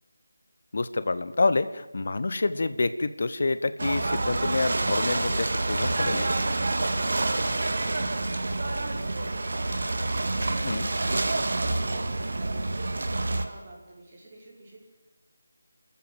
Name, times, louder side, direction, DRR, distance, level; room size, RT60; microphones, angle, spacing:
voice 1, 0.7-6.4 10.6-10.9, left 3 dB, 50° left, 14 dB, 1.2 m, -27 dB
Ocean / Boat Water vehicle, 3.8-13.4, right 2 dB, 50° right, 2.0 m, -27 dB
voice 2, 6.9-14.8, right 2 dB, 30° right, -5 dB, 5.7 m, -47 dB
29.5 x 14.5 x 7.8 m, 1.1 s
figure-of-eight pair, 160°, 0 cm